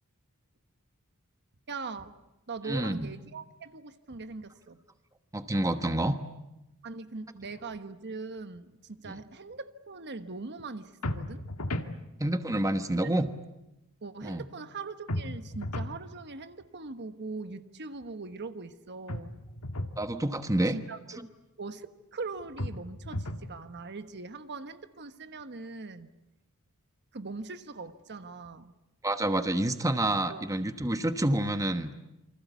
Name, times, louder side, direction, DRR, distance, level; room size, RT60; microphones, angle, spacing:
voice 1, 1.7-2.1 2.5-4.8 6.8-11.4 13.0-13.1 14.0-19.4 20.7-21.3 21.6-26.1 27.1-28.7 30.3-30.4, right 3 dB, 50° right, 10 dB, 1.3 m, -41 dB
voice 2, 2.7-3.1 5.3-6.2 9.0-9.1 12.2-13.3 14.2-14.5 20.0-20.8 29.0-31.9, right 1 dB, 15° right, 9 dB, 1.1 m, -28 dB
sound 1, 11.0-11.9 15.1-16.0 19.1-20.0 22.6-23.5, left 1 dB, 80° left, 1.9 m, -34 dB
28.0 x 24.5 x 8.2 m, 0.94 s
head